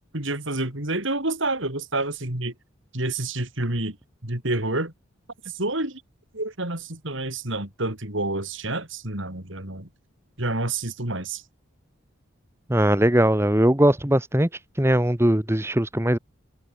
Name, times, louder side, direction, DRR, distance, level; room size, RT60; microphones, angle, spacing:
voice 1, 0.0-2.5 2.9-4.0 4.2-4.9 5.4-6.0 6.3-9.9 10.4-11.4, right 2 dB, 60° right, 4.5 m, -28 dB
voice 2, 12.7-14.5 14.8-16.2, right 1 dB, 10° right, 1.1 m, -20 dB
head